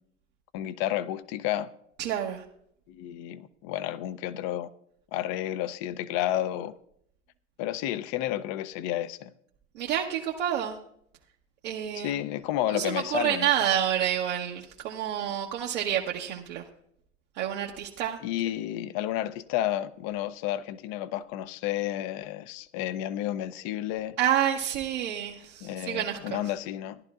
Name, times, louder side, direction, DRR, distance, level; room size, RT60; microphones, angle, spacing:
voice 1, 0.5-1.7 2.9-4.7 5.1-6.7 7.6-9.3 11.9-13.5 18.2-24.2 25.6-27.0, left 13 dB, 45° left, 0.6 m, -31 dB
voice 2, 2.0-2.4 9.8-10.8 11.6-12.2 12.7-16.6 17.4-18.2 24.2-26.4, right 10 dB, 65° right, 1.0 m, -28 dB
16.5 x 11.0 x 2.4 m
hypercardioid pair, 95°, 38 cm